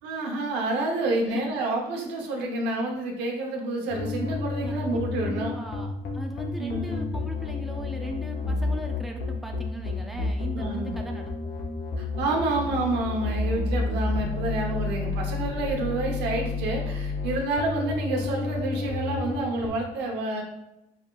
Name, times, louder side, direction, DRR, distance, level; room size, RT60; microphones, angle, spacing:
voice 1, 0.0-5.6 6.6-7.1 10.5-10.9 12.0-20.4, right 2 dB, 85° right, 0 dB, 1.0 m, -29 dB
sound 1, 3.9-19.7, left 3 dB, 60° left, 0.9 m, -30 dB
voice 2, 4.6-11.5, right 1 dB, ahead, 1 dB, 0.6 m, -38 dB
5.2 x 3.8 x 2.4 m, 0.90 s
cardioid pair, 110°, 17 cm